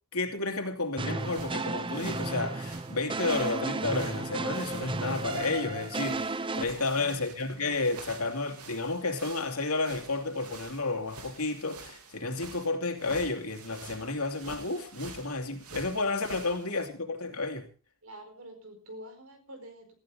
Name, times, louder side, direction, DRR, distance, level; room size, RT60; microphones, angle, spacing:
voice 1, 0.1-17.7, left 3 dB, 90° left, 2.8 m, -31 dB
sound 1, 1.0-6.6, right 3 dB, 20° right, 0.7 m, -33 dB
sound 2, 1.2-16.9, right 4 dB, 90° right, 3.1 m, -49 dB
voice 2, 6.7-7.5 16.4-16.6 18.0-19.9, equal, 75° right, 4.7 m, -47 dB
18.0 x 14.5 x 3.9 m
head